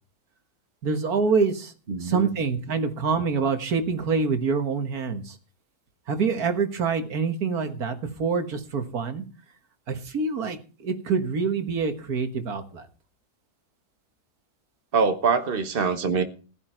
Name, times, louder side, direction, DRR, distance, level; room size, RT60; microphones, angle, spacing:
voice 1, 0.8-1.7 2.0-5.3 6.1-9.2 9.9-12.9, right 5 dB, 70° right, 2.0 m, -26 dB
voice 2, 1.9-2.3 14.9-16.2, right 5 dB, 40° right, 1.4 m, -24 dB
15.5 x 11.0 x 4.4 m
omnidirectional pair, 1.7 m